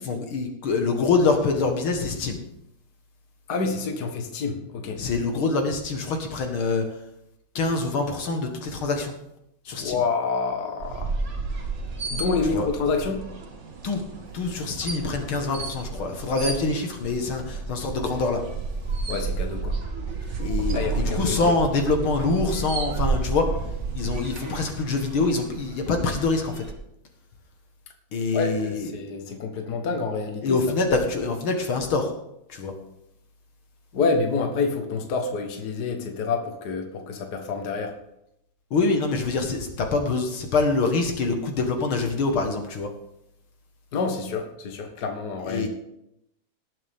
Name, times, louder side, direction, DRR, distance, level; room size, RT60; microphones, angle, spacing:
voice 1, 0.1-2.4 5.0-6.9 7.6-9.1 9.7-10.0 12.5-12.7 13.8-14.0 14.3-18.4 20.4-23.5 23.9-26.7 28.1-28.9 30.4-32.1 32.5-32.7 38.7-42.9 45.5-45.7, left 3 dB, 80° left, 4 dB, 2.4 m, -25 dB
voice 2, 3.5-5.0 9.7-11.1 12.1-13.2 19.1-19.8 20.7-21.4 28.3-30.6 33.9-37.9 43.9-45.7, left 4 dB, 55° left, 4 dB, 1.9 m, -28 dB
sound 1, 10.8-26.7, right 4 dB, 35° right, 1.6 m, -31 dB
18.5 x 7.4 x 3.6 m, 0.80 s
omnidirectional pair, 2.3 m